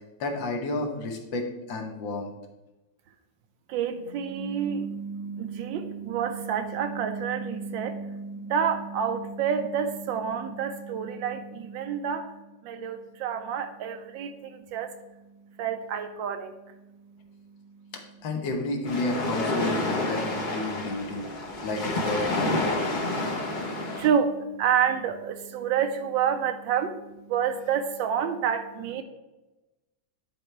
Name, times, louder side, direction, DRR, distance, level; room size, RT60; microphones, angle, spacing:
voice 1, 0.2-2.3 17.9-21.3 21.6-22.9, left 2 dB, 75° left, 3 dB, 1.8 m, -31 dB
voice 2, 3.7-15.0 15.6-16.8 17.7-17.9 23.2-29.0, right 7 dB, 85° right, 7 dB, 1.3 m, -29 dB
sound 1, 18.8-24.1, left 2 dB, 40° left, 0.6 m, -29 dB
10.0 x 4.4 x 3.3 m, 1.0 s
omnidirectional pair, 2.0 m